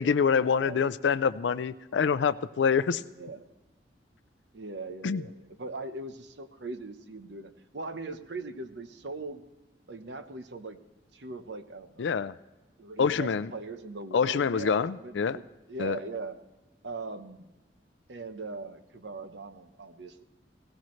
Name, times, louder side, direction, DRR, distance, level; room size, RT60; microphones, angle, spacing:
voice 1, 0.0-3.0 5.0-5.2 12.0-12.3 13.0-13.5 14.1-15.4 15.8-16.0, left 6 dB, 85° left, 15 dB, 0.4 m, -26 dB
voice 2, 3.0-3.5 4.5-9.4 9.9-10.8 11.1-12.2 12.8-16.4 16.8-17.5 18.1-20.2, right 3 dB, 75° right, 9 dB, 0.9 m, -40 dB
17.5 x 17.0 x 3.2 m, 1.1 s
head